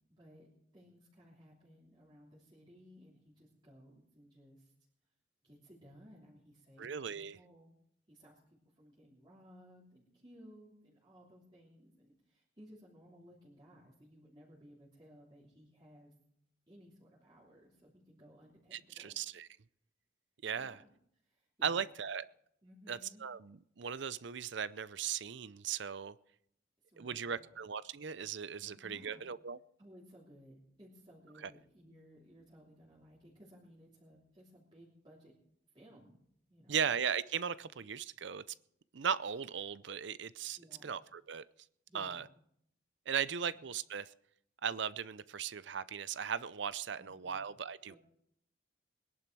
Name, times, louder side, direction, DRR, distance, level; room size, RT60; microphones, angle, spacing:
voice 1, 0.1-4.7 5.4-7.7 8.1-16.1 16.7-19.2 20.5-20.9 21.2-21.8 22.6-23.2 26.8-27.6 28.6-29.2 29.8-35.3 35.7-36.2 36.5-36.8 40.6-41.0 41.9-42.3 47.0-47.5 47.9-48.0, equal, 25° right, -8 dB, 3.1 m, -59 dB
voice 2, 6.8-7.4 18.7-19.5 20.4-20.8 21.6-22.2 22.9-26.2 27.0-29.6 31.4-31.5 36.7-38.4 38.9-41.4 41.9-42.2 43.1-44.1 44.6-48.0, right 7 dB, 65° right, 17 dB, 0.6 m, -38 dB
21.0 x 11.0 x 4.6 m, 0.73 s
head